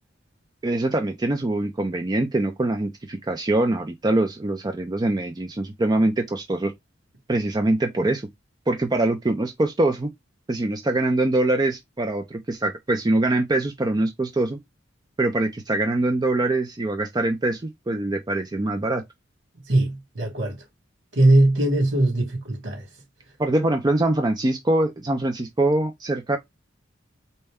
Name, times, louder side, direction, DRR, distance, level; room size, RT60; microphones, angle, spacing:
voice 1, 0.6-6.7 7.3-8.2 8.7-10.1 10.5-14.6 15.2-19.0 23.4-26.4, right 2 dB, 20° right, 0.5 m, -23 dB
voice 2, 19.7-20.6 21.1-22.9, right 1 dB, 70° right, 2.2 m, -20 dB
4.1 x 2.2 x 3.5 m
head